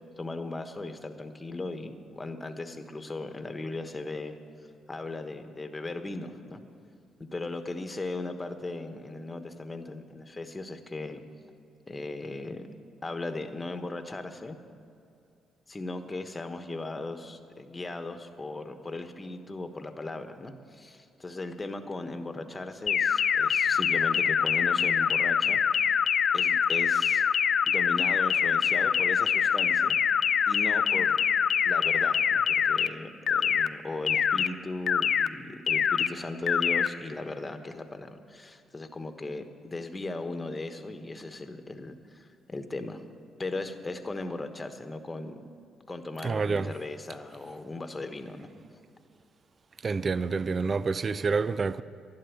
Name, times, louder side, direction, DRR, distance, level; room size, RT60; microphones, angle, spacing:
voice 1, 0.2-4.3 4.9-6.6 7.3-11.2 11.9-12.7 13.0-14.6 15.7-25.6 26.3-27.2 27.7-30.0 30.5-31.2 31.6-43.0 43.4-45.4 45.9-48.5, left 2 dB, 20° left, 1.2 m, -37 dB
sound 1, 22.9-32.9 33.3-33.7 34.1-34.5 34.9-35.3 35.7-36.1 36.5-36.9, left 7 dB, 55° left, 0.4 m, -24 dB
voice 2, 46.2-46.7 49.8-51.8, right 4 dB, 40° right, 0.5 m, -28 dB
11.5 x 11.5 x 8.5 m
cardioid pair, 90°, 0 cm